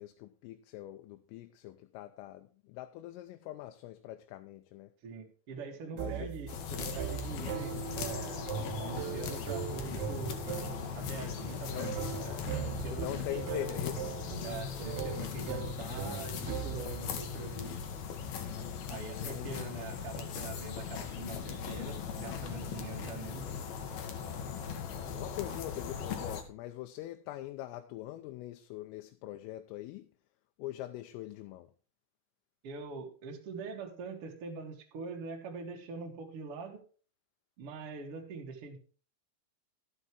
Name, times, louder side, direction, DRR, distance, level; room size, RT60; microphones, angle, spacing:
voice 1, 0.0-4.9 5.9-6.3 11.6-11.9 12.9-14.2 19.2-19.9 24.9-30.1 30.6-31.7, left 15 dB, 90° left, 3.4 m, -43 dB
voice 2, 5.0-8.5 8.8-10.4 10.9-11.9 12.2-13.4 14.4-17.8 18.9-23.4 32.6-36.8 37.6-38.8, right 4 dB, 55° right, 1.6 m, -43 dB
sound 1, 6.0-17.1, right 9 dB, 85° right, 3.6 m, -40 dB
sound 2, 6.5-26.4, left 7 dB, 65° left, 2.7 m, -39 dB
13.0 x 8.0 x 4.7 m
omnidirectional pair, 5.8 m